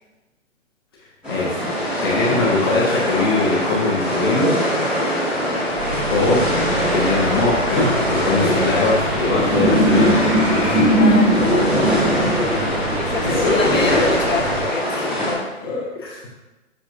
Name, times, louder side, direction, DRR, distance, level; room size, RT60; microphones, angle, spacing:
sound 1, 1.2-15.3, equal, ahead, 1.4 m, -22 dB
voice 1, 2.0-4.6 6.1-6.4 6.9-10.7 13.3-14.1 15.6-16.4, left 3 dB, 20° left, -4 dB, 0.7 m, -21 dB
voice 2, 5.6-6.0 11.0-12.1 13.0-15.8, left 3 dB, 70° left, 4 dB, 1.0 m, -27 dB
sound 2, 5.8-14.6, right 1 dB, 20° right, 1.2 m, -21 dB
7.0 x 6.3 x 2.6 m, 1.1 s
figure-of-eight pair, 140°, 40 cm